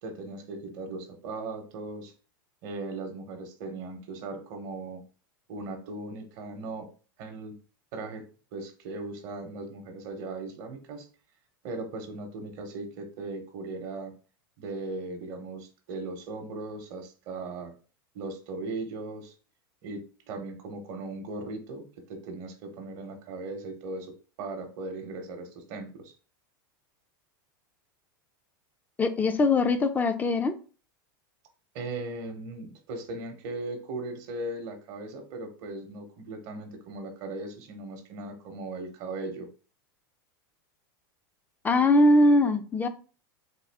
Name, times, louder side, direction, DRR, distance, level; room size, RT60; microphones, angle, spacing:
voice 1, 0.0-2.1 2.6-5.0 5.5-6.9 7.2-7.6 7.9-11.1 11.6-14.1 14.6-17.7 18.1-19.3 19.8-26.1 31.7-39.5, right 2 dB, 55° right, 6 dB, 0.8 m, -38 dB
voice 2, 29.0-30.5 41.6-42.9, left 2 dB, 15° left, 9 dB, 0.4 m, -21 dB
3.7 x 2.3 x 3.3 m, 0.37 s
supercardioid pair, 125°, 12 cm